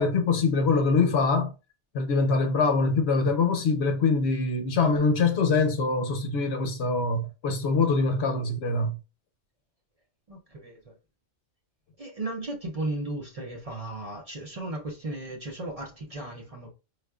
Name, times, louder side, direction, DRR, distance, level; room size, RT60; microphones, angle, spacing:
voice 1, 0.0-1.5 1.9-9.0, left 4 dB, 70° left, 0.9 m, -24 dB
voice 2, 10.3-10.9 12.0-16.7, right 2 dB, 40° right, 0.6 m, -35 dB
4.4 x 2.4 x 2.3 m
omnidirectional pair, 1.2 m